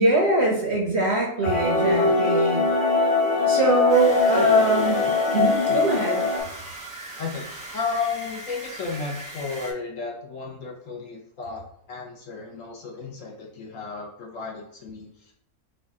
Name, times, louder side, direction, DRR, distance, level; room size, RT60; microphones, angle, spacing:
voice 1, 0.0-2.7 3.5-5.1 5.3-6.3, right 2 dB, 55° right, -1 dB, 0.8 m, -23 dB
sound 1, 1.4-6.4, left 3 dB, 85° left, 2.3 m, -21 dB
sound 2, 3.9-9.7, right 1 dB, 15° right, 0.7 m, -39 dB
voice 2, 7.2-11.6 11.9-15.3, left 4 dB, 60° left, -1 dB, 1.1 m, -33 dB
5.0 x 2.2 x 3.6 m, 0.69 s
omnidirectional pair, 1.7 m